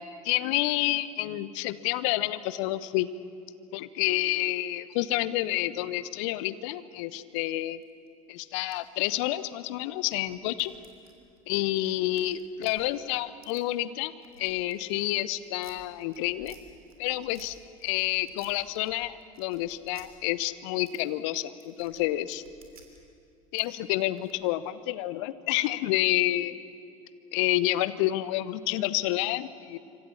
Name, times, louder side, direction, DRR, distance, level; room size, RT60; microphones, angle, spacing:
voice 1, 0.0-3.1 3.7-7.8 8.3-10.7 11.5-14.1 14.4-16.6 17.0-17.6 17.8-22.4 23.5-26.5 27.3-29.8, left 16 dB, 60° left, 16 dB, 1.0 m, -29 dB
sound 1, 7.3-8.1 8.5-12.7 13.4-13.6 14.1-16.6 16.9-17.5 17.8-18.9 19.2-20.1 20.8-21.0 21.2-23.0 23.6-23.7 23.9-24.3, right 4 dB, 85° right, 3.2 m, -56 dB
27.5 x 25.0 x 7.3 m, 2.4 s
figure-of-eight pair, 70°, 18 cm